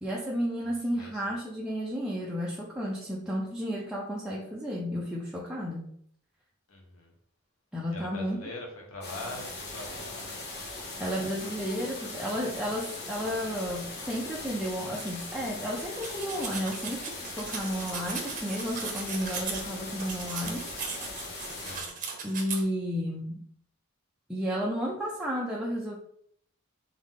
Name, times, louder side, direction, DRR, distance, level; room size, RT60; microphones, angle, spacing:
voice 1, 0.0-5.9 7.7-8.4 11.0-20.7 22.2-23.4 24.3-26.0, equal, 5° right, -5 dB, 0.6 m, -32 dB
voice 2, 0.9-1.3 6.7-7.1 7.9-10.4 21.6-22.0, left 2 dB, 80° left, 0 dB, 1.2 m, -43 dB
sound 1, 9.0-21.8, left 2 dB, 55° left, 1.1 m, -40 dB
sound 2, 16.0-19.6 20.0-22.6, right 5 dB, 40° right, 0.8 m, -38 dB
3.8 x 3.6 x 3.7 m, 0.65 s
head